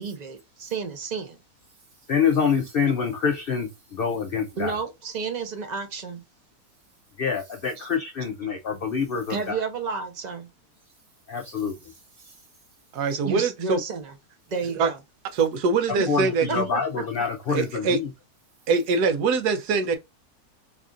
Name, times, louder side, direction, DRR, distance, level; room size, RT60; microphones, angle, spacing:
voice 1, 0.0-1.4 4.6-6.2 7.8-7.9 9.3-10.5 13.1-14.1 14.5-15.0 16.0-16.1 16.5-17.0, right 5 dB, 45° right, 0.5 m, -31 dB
voice 2, 2.1-4.7 7.2-9.6 11.3-11.7 16.1-18.1, left 6 dB, 90° left, 0.5 m, -26 dB
voice 3, 12.9-13.8 14.8-14.9 15.3-16.7 17.5-18.0 18.7-20.0, right 4 dB, 85° right, 1.2 m, -23 dB
3.3 x 2.4 x 3.7 m
omnidirectional pair, 1.6 m